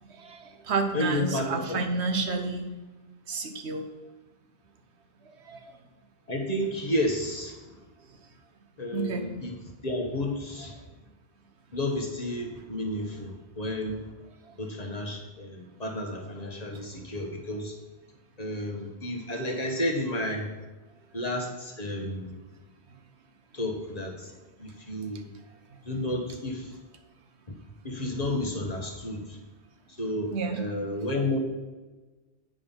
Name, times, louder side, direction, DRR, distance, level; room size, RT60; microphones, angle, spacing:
voice 1, 0.1-2.7 3.3-3.9 5.5-5.6 8.9-9.3 30.3-30.6, right 3 dB, 85° right, 5 dB, 1.2 m, -30 dB
voice 2, 0.9-1.8 6.3-7.6 8.8-9.5 9.8-10.7 11.7-14.0 14.6-17.7 18.4-20.5 21.1-22.4 23.5-24.3 24.6-25.3 25.9-26.8 27.8-29.4 30.0-31.4, left 1 dB, 40° left, 1 dB, 1.3 m, -31 dB
8.7 x 5.2 x 5.6 m, 1.2 s
omnidirectional pair, 1.1 m